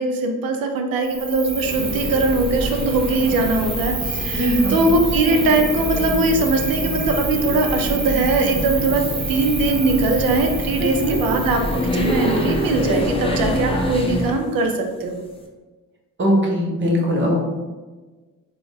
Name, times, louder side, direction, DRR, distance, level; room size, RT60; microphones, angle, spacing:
voice 1, 0.0-9.0 9.3-15.2, right 2 dB, 85° right, 4 dB, 0.6 m, -21 dB
Cricket, 1.0-13.0, right 4 dB, 60° right, 0.9 m, -30 dB
sound 1, 1.5-14.4, equal, 15° left, 0.5 m, -26 dB
voice 2, 4.4-4.8 11.0-11.2 16.2-17.4, equal, 35° right, -1 dB, 0.9 m, -20 dB
3.9 x 2.4 x 3.5 m, 1.3 s
wide cardioid pair, 130°, 33 cm